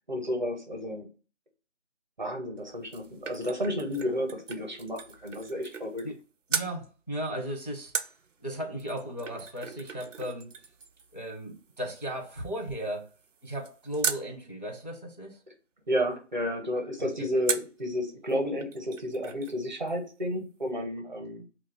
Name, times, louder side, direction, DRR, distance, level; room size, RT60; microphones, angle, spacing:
voice 1, 0.1-1.1 2.2-6.0 15.9-21.4, equal, 40° right, 0.7 m, -31 dB
sound 1, 2.6-6.2 6.5-6.8 7.9-14.3 17.5-17.8 18.3-18.4 18.6-19.6 19.9-20.0, right 6 dB, 90° right, 0.5 m, -38 dB
voice 2, 6.5-8.1 8.4-10.5 11.1-13.1 13.4-15.4 17.0-17.3, right 1 dB, 35° left, 0.4 m, -36 dB
2.3 x 2.2 x 3.3 m
figure-of-eight pair, 165°, 36 cm